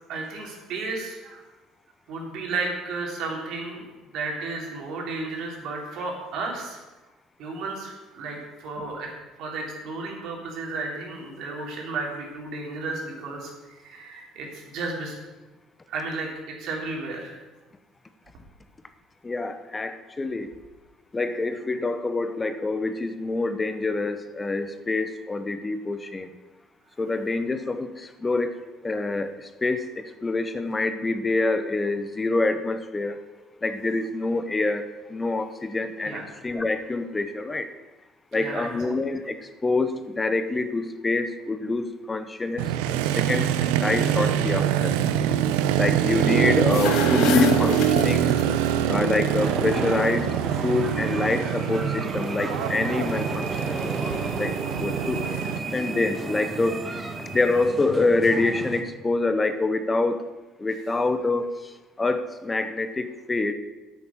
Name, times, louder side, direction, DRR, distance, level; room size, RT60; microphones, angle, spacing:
voice 1, 0.1-1.4 2.1-3.9 4.1-6.8 7.4-9.1 9.4-15.2 15.9-17.4 36.0-36.3 38.3-38.9 47.3-47.5 48.3-48.7, right 3 dB, 65° right, 0 dB, 3.6 m, -33 dB
voice 2, 19.2-20.5 21.1-26.3 27.0-33.2 33.6-37.7 38.3-39.4 39.6-44.9 45.8-48.3 48.9-50.4 50.6-53.8 54.4-60.3 60.6-61.6 62.0-63.5, left 3 dB, 20° left, 10 dB, 0.9 m, -26 dB
Motorcycle, 42.6-55.6, right 10 dB, 85° right, 0.6 m, -24 dB
sound 1, 46.5-48.7, left 12 dB, 70° left, 0.7 m, -27 dB
sound 2, 49.4-58.8, right 3 dB, 35° right, 1.8 m, -32 dB
9.5 x 8.2 x 7.3 m, 1.1 s
supercardioid pair, 85°, 0 cm